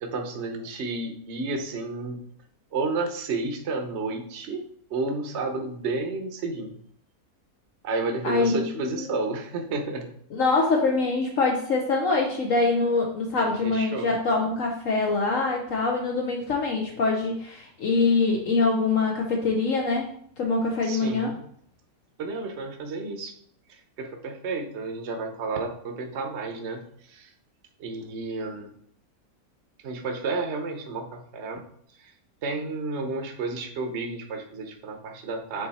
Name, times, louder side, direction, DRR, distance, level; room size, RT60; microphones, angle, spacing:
voice 1, 0.0-2.2 2.7-6.7 7.8-10.1 13.4-14.1 20.8-21.4 22.2-23.3 23.7-27.3 27.8-28.7 29.8-31.6 32.0-32.1 32.4-35.7, right 3 dB, 50° right, 4 dB, 1.1 m, -31 dB
voice 2, 8.2-9.1 10.3-20.1 20.4-21.3, left 3 dB, 60° left, 0 dB, 1.2 m, -24 dB
7.7 x 4.2 x 4.2 m, 0.64 s
omnidirectional pair, 1.6 m